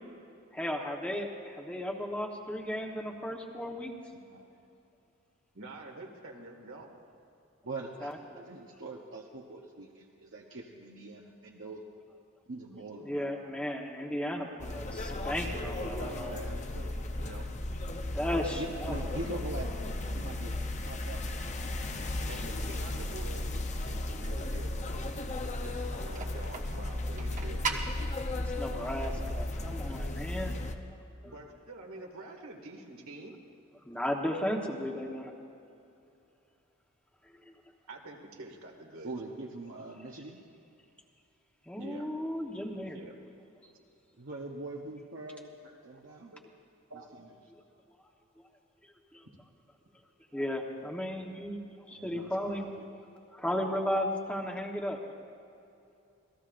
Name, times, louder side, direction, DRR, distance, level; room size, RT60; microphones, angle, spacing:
voice 1, 0.5-3.9 8.0-8.4 13.0-16.4 18.1-19.0 25.5-25.6 28.3-30.5 31.2-31.3 33.8-35.3 37.5-37.6 41.7-43.0 49.1-49.2 50.3-51.6 51.9-52.7 53.3-55.0, equal, 5° left, 0 dB, 1.1 m, -35 dB
voice 2, 4.1-4.6 7.6-11.9 12.5-13.2 15.3-15.5 18.6-19.7 20.1-20.5 20.8-22.2 39.0-40.4 44.2-45.5 45.8-46.3 47.2-47.3 51.9-52.9, right 2 dB, 65° right, -1 dB, 1.0 m, -43 dB
voice 3, 5.5-6.9 15.5-17.5 22.3-23.5 23.8-27.9 31.2-33.4 37.9-39.1 41.8-42.1 42.9-43.2 45.6-46.0 46.3-46.4 46.9-47.1, right 2 dB, 85° right, 1 dB, 2.1 m, -47 dB
sound 1, 14.6-30.7, left 2 dB, 35° left, 0.8 m, -35 dB
sound 2, 25.8-30.8, right 4 dB, 40° right, 1.0 m, -41 dB
27.0 x 18.0 x 2.6 m, 2.6 s
head